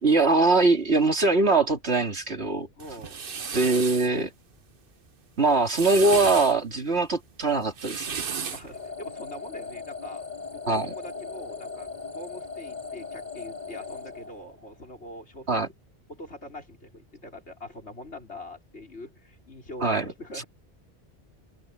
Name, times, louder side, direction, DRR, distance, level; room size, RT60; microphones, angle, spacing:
voice 1, 0.0-2.7 3.5-4.3 5.4-8.1 10.7-10.9 15.5-15.7 19.8-20.1, right 3 dB, 75° right, 3.0 m, -22 dB
voice 2, 2.7-3.2 8.5-15.7 16.1-20.4, left 1 dB, 80° left, 5.5 m, -43 dB
sound 1, 2.8-4.1 5.5-6.5 7.6-8.7, right 6 dB, 55° right, 1.2 m, -33 dB
sound 2, 8.7-14.9, left 4 dB, 45° left, 4.0 m, -39 dB
open air
omnidirectional pair, 1.1 m